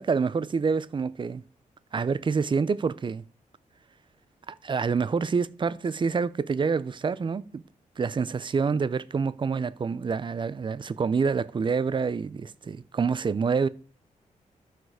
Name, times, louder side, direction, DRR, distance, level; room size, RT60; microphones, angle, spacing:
voice 1, 0.0-1.4 1.9-3.2 4.5-7.6 8.0-13.7, right 5 dB, 35° right, 0.7 m, -27 dB
12.0 x 8.1 x 6.6 m
wide cardioid pair, 120°, 14 cm